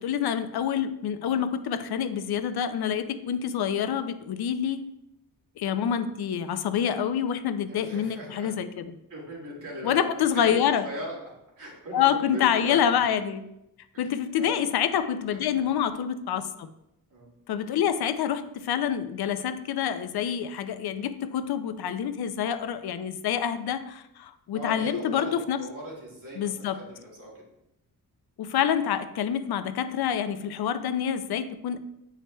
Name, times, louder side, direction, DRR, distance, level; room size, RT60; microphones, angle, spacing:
voice 1, 0.0-4.8 5.6-9.0 9.8-10.9 11.9-13.4 14.0-16.7 17.5-25.6 26.4-26.8 28.4-31.8, left 9 dB, 85° left, 11 dB, 0.5 m, -27 dB
voice 2, 7.7-8.5 9.1-11.1 11.6-12.9 13.9-14.0 14.4-14.6 15.5-15.7 17.1-17.3 24.5-25.3 25.6-27.4, equal, 55° right, -4 dB, 2.4 m, -39 dB
9.2 x 4.6 x 2.3 m, 0.84 s
wide cardioid pair, 110°, 37 cm